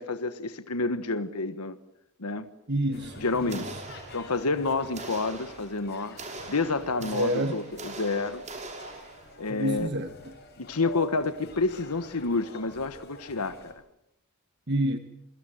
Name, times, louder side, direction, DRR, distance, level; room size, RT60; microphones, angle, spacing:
voice 1, 0.0-1.8 2.2-2.5 3.2-3.7 4.1-8.4 9.4-9.9 10.6-13.7, left 3 dB, 85° left, 1.3 m, -29 dB
voice 2, 2.7-3.7 7.1-7.6 9.5-10.3 14.7-15.0, right 1 dB, 50° right, 1.4 m, -29 dB
sound 1, 2.9-13.7, left 3 dB, 45° left, 7.8 m, -46 dB
sound 2, 3.5-4.6 4.9-9.4, right 3 dB, 30° right, 5.7 m, -42 dB
29.0 x 23.5 x 7.7 m
head